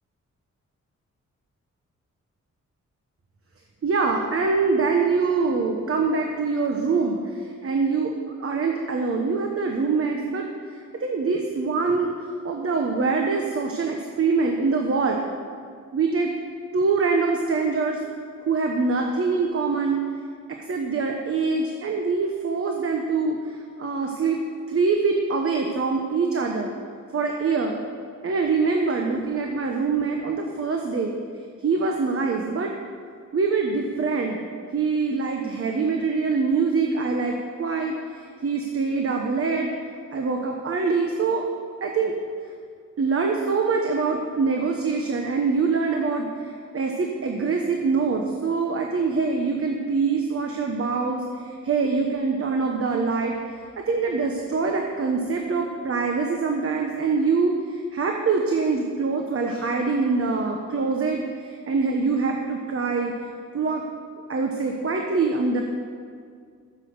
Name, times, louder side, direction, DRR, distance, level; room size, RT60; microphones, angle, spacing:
voice 1, 3.8-8.1 8.4-12.1 12.4-15.2 15.9-16.3 16.7-18.0 18.5-20.0 20.5-24.4 24.7-26.7 27.1-27.8 28.2-31.1 31.6-32.7 33.3-34.4 34.7-39.7 40.1-41.4 41.8-42.2 43.0-63.1 63.5-63.8 64.3-65.6, right 4 dB, 50° right, 2 dB, 1.1 m, -24 dB
13.5 x 7.3 x 7.9 m, 2.1 s
wide cardioid pair, 140°, 29 cm